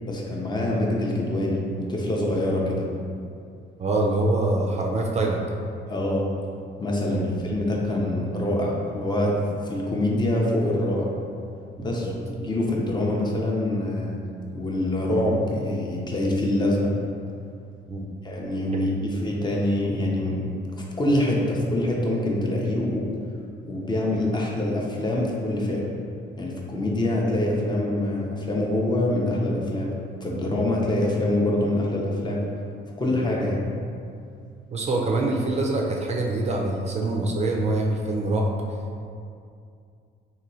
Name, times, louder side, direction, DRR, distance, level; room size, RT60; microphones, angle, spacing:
voice 1, 0.1-2.9 5.9-6.2 6.8-9.4 9.6-11.1 11.8-14.2 14.5-16.9 18.2-20.4 21.0-23.1 23.6-25.8 26.4-29.9 30.2-32.5 33.0-33.6, left 1 dB, 20° left, -2 dB, 0.5 m, -25 dB
voice 2, 3.8-5.5 7.1-7.3 11.8-12.1 12.5-12.6 17.9-18.1 18.7-18.8 34.7-38.5, right 2 dB, 35° right, 0 dB, 0.4 m, -25 dB
2.9 x 2.6 x 2.7 m, 2.4 s
cardioid pair, 90°, 20 cm